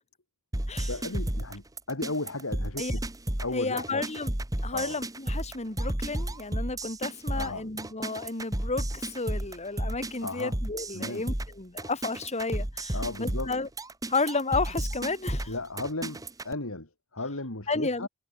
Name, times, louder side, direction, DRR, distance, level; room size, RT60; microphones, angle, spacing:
sound 1, 0.5-16.5, right 1 dB, 15° right, 1.3 m, -32 dB
voice 1, 0.9-3.0 3.4-4.0 4.7-5.0 7.3-7.6 10.2-10.5 10.9-11.2 12.9-13.5 15.5-18.1, left 2 dB, 70° left, 3.3 m, -35 dB
voice 2, 3.5-4.3 4.6-13.7 14.1-15.6 17.7-18.1, left 3 dB, 30° left, 2.3 m, -32 dB
head